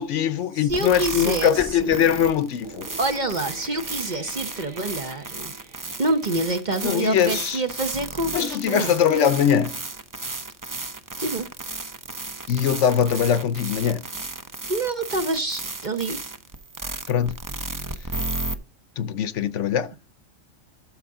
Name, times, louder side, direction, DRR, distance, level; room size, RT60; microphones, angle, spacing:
voice 1, 0.0-2.9 6.8-7.6 8.3-9.8 12.5-14.0 17.1-17.3 19.0-19.9, left 8 dB, 70° left, 1.0 m, -22 dB
voice 2, 0.6-1.5 1.8-1.9 3.0-5.5 6.0-8.9 11.2-11.5 14.7-16.2, right 2 dB, 40° right, 0.9 m, -27 dB
sound 1, 0.7-18.6, right 2 dB, 25° right, 0.5 m, -34 dB
sound 2, 2.6-7.8, right 4 dB, 85° right, 2.1 m, -46 dB
13.0 x 5.3 x 3.7 m
omnidirectional pair, 1.4 m